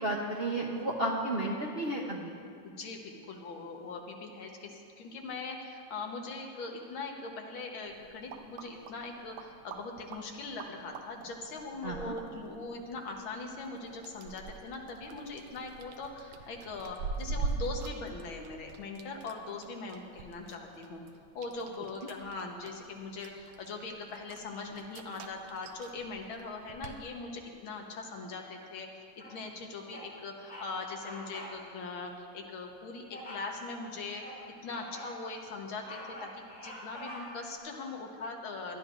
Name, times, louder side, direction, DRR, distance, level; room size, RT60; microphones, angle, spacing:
voice 1, 0.0-2.3 11.8-12.1, right 1 dB, 50° right, -2 dB, 0.7 m, -32 dB
voice 2, 2.6-21.0 21.4-28.9 29.3-34.2 34.6-38.8, left 3 dB, 85° left, 2 dB, 2.0 m, -41 dB
sound 1, 7.8-27.0, right 4 dB, 75° right, 1.4 m, -44 dB
Bird vocalization bird call bird song, 29.2-29.6 29.9-30.1 30.4-30.7 31.0-31.6 31.9-32.1 33.1-33.5 34.0-35.2 35.6-37.5, equal, 25° left, 2.9 m, -46 dB
20.5 x 11.5 x 2.5 m, 2.4 s
omnidirectional pair, 2.1 m